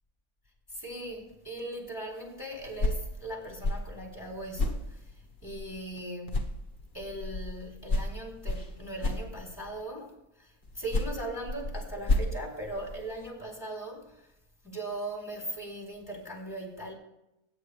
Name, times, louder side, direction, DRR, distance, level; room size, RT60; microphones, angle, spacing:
voice 1, 0.7-5.1 5.4-6.5 6.9-14.3 14.6-16.9, right 1 dB, 15° left, 4.0 m, -39 dB
sound 1, 2.6-6.0 6.3-9.8 10.6-13.3, left 2 dB, 35° left, 1.4 m, -33 dB
22.0 x 9.7 x 3.4 m
omnidirectional pair, 1.6 m